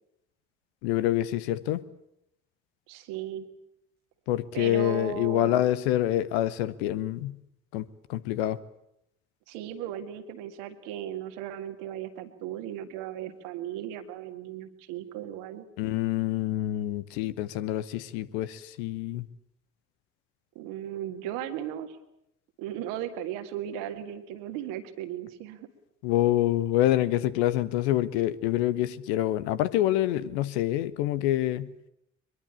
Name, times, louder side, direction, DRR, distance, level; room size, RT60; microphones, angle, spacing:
voice 1, 0.8-1.8 4.3-7.3 7.7-7.8 8.1-8.6 15.8-19.3 26.0-31.7, left 13 dB, 65° left, 15 dB, 1.0 m, -26 dB
voice 2, 2.9-3.5 4.5-5.6 9.5-15.7 20.6-22.0 22.6-25.7, right 10 dB, 65° right, 8 dB, 1.9 m, -36 dB
22.5 x 22.0 x 8.7 m, 0.80 s
figure-of-eight pair, 45°, 35 cm